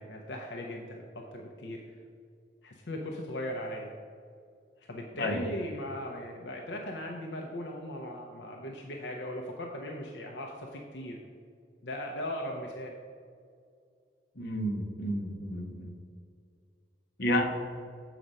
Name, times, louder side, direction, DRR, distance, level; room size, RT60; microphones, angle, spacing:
voice 1, 0.0-1.8 2.6-3.9 4.9-11.2 11.8-12.9, left 1 dB, 80° left, 0 dB, 0.7 m, -38 dB
voice 2, 5.1-5.5 14.3-15.9 17.2-17.5, equal, 65° left, 3 dB, 1.0 m, -31 dB
7.5 x 5.0 x 5.4 m, 2.2 s
head